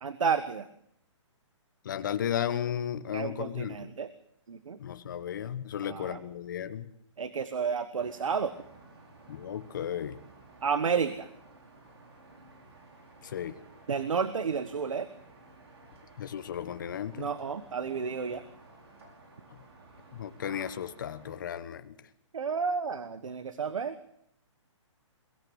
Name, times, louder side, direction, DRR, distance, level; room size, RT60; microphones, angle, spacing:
voice 1, 0.0-0.6 3.1-4.1 4.5-4.8 5.8-6.2 7.2-8.5 10.6-11.3 13.9-15.1 17.2-18.4 22.3-23.9, right 6 dB, 90° right, 12 dB, 1.4 m, -31 dB
voice 2, 1.8-3.8 4.8-6.8 9.3-10.2 13.2-13.5 16.2-17.3 20.1-21.9, left 9 dB, 40° left, 10 dB, 1.3 m, -34 dB
sound 1, 8.0-21.4, right 2 dB, 55° right, 5.8 m, -54 dB
22.5 x 17.0 x 8.1 m, 0.73 s
hypercardioid pair, 175°, 16 cm